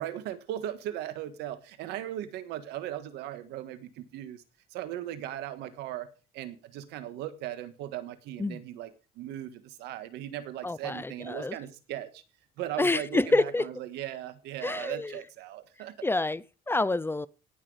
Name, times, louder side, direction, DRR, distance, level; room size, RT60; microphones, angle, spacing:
voice 1, 0.0-4.4 4.7-12.2 12.6-16.0, right 12 dB, 85° right, 1.5 m, -38 dB
voice 2, 10.6-11.5 12.8-13.7 14.6-15.2 16.0-17.3, left 2 dB, 15° left, 0.5 m, -28 dB
18.0 x 6.0 x 4.9 m
cardioid pair, 110°, 17 cm